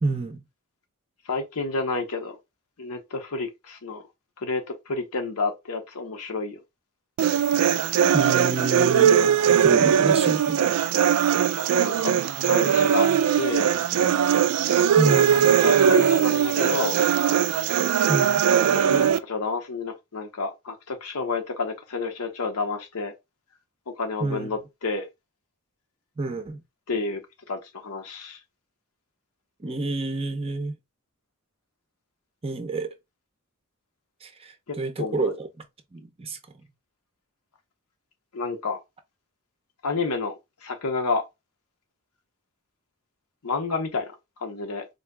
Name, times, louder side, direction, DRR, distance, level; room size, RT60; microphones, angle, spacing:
voice 1, 0.0-0.4 8.1-9.1 9.6-10.6 15.0-15.5 18.1-18.4 24.2-24.5 26.2-26.6 29.6-30.8 32.4-32.9 34.2-35.7 35.9-36.4, right 3 dB, 25° right, 0.6 m, -29 dB
voice 2, 1.3-2.4 2.8-4.0 4.4-6.6 11.7-13.7 15.1-17.0 18.7-23.1 23.9-25.0 26.9-27.2 27.5-28.4 34.7-35.3 38.3-38.8 39.8-40.3 40.6-41.2 43.4-44.9, left 3 dB, 75° left, 0.8 m, -30 dB
sound 1, 7.2-19.2, right 8 dB, 80° right, 0.3 m, -20 dB
3.9 x 2.7 x 2.2 m
head